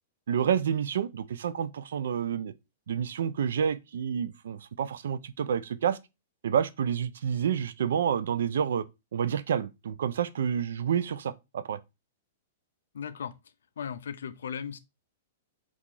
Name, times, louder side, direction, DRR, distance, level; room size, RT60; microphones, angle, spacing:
voice 1, 0.3-2.5 2.9-6.0 6.4-8.8 9.1-11.8, right 8 dB, 80° right, 0.3 m, -29 dB
voice 2, 12.9-14.8, left 7 dB, 90° left, 0.4 m, -37 dB
2.8 x 2.4 x 3.8 m
hypercardioid pair, 145°, 0 cm